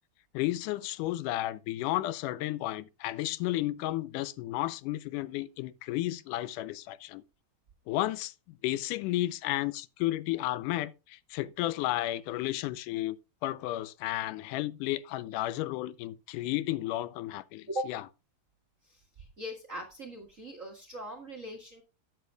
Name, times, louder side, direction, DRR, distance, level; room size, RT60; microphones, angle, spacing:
voice 1, 0.3-7.2 7.9-13.2 13.4-18.0, left 16 dB, 90° left, 2.2 m, -33 dB
voice 2, 18.9-21.8, equal, 40° right, 1.2 m, -40 dB
13.0 x 9.2 x 2.3 m
omnidirectional pair, 3.6 m